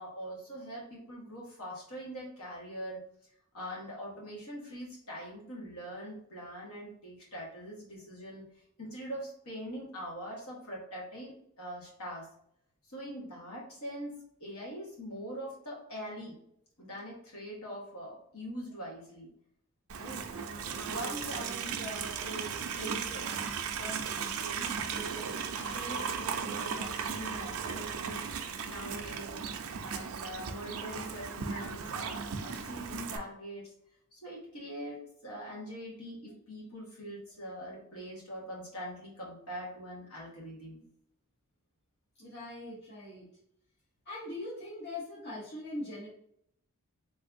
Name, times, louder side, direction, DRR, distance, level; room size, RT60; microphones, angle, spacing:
voice 1, 0.0-3.0 3.5-8.4 8.8-12.3 12.9-16.4 16.8-19.3 20.0-23.2 23.7-25.3 25.6-33.7 34.1-40.8, equal, 75° left, -4 dB, 1.5 m, -43 dB
Livestock farm animals working animals, 19.9-33.2, right 6 dB, 65° right, 0.4 m, -36 dB
voice 2, 42.2-43.3 44.1-46.1, left 2 dB, 45° left, -6 dB, 0.8 m, -41 dB
3.5 x 3.1 x 2.5 m, 0.72 s
head